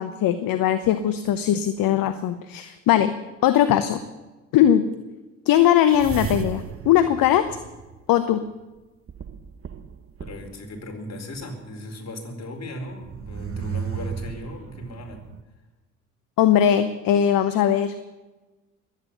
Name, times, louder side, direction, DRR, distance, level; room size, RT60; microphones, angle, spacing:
voice 1, 0.0-3.1 3.4-4.0 4.5-4.9 5.5-7.5 8.1-8.4 16.4-17.9, left 10 dB, 60° left, 12 dB, 1.0 m, -20 dB
sound 1, 5.9-8.4 9.1-10.7 11.3-11.4 12.9-15.4, right 7 dB, 35° right, 1.2 m, -34 dB
voice 2, 10.2-15.2, left 1 dB, 40° left, 3 dB, 4.5 m, -37 dB
22.5 x 9.3 x 7.0 m, 1.2 s
hypercardioid pair, 50°, 39 cm